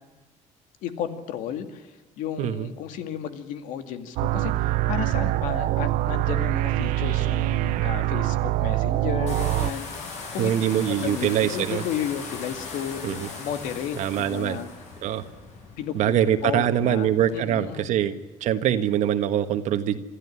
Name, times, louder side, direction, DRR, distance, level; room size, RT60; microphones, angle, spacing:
voice 1, 0.8-10.6 10.9-14.7 15.8-16.2 16.4-17.9, left 9 dB, 80° left, 9 dB, 2.2 m, -33 dB
voice 2, 2.4-2.7 10.4-11.8 13.0-13.3 14.0-14.6 15.0-15.2 15.9-18.1 18.4-20.0, right 10 dB, 65° right, 9 dB, 1.4 m, -23 dB
sound 1, 4.2-9.7, right 16 dB, 85° right, 0.7 m, -24 dB
sound 2, 9.3-17.4, left 4 dB, 60° left, 7.0 m, -39 dB
26.5 x 13.5 x 9.9 m, 1.3 s
cardioid pair, 150°, 13 cm